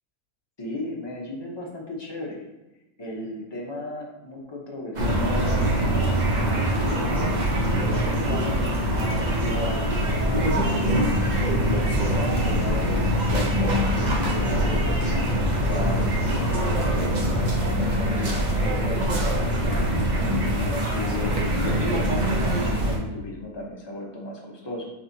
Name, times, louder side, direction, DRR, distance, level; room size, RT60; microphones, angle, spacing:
voice 1, 0.6-2.4 3.0-6.2 6.5-7.5 7.8-11.0 11.6-15.2 15.6-17.2 17.5-19.9 20.5-22.1 22.4-24.9, left 1 dB, 35° left, -2 dB, 0.4 m, -35 dB
sound 1, 4.9-23.0, equal, 55° right, 0.5 m, -23 dB
sound 2, 10.1-15.7, right 3 dB, 75° right, 1.3 m, -37 dB
4.2 x 4.1 x 2.7 m, 1.0 s
omnidirectional pair, 1.7 m